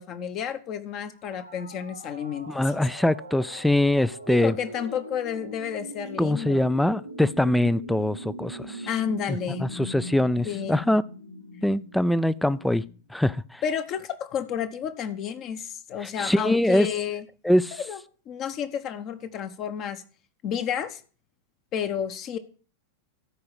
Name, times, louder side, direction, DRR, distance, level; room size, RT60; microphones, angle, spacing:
voice 1, 0.0-2.7 4.3-6.7 8.9-9.7 10.4-10.9 13.6-17.2 17.7-20.0 20.4-21.0 21.7-22.4, left 8 dB, 35° left, 1.1 m, -31 dB
sound 1, 1.1-13.0, equal, 90° left, 1.4 m, -41 dB
voice 2, 2.5-4.5 6.2-8.8 9.6-11.0 11.6-12.8 13.1-13.6 16.2-16.9 17.4-17.7, left 1 dB, 5° left, 0.4 m, -23 dB
13.0 x 4.8 x 7.9 m
figure-of-eight pair, 90°, 0 cm